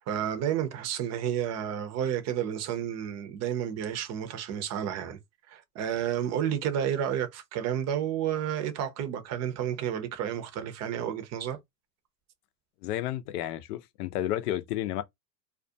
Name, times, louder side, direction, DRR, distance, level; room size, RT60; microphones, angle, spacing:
voice 1, 0.1-5.2 5.5-11.6, right 9 dB, 35° right, 0.6 m, -31 dB
voice 2, 12.8-15.0, left 13 dB, 70° left, 0.6 m, -31 dB
2.4 x 2.2 x 2.6 m
hypercardioid pair, 105°, 48 cm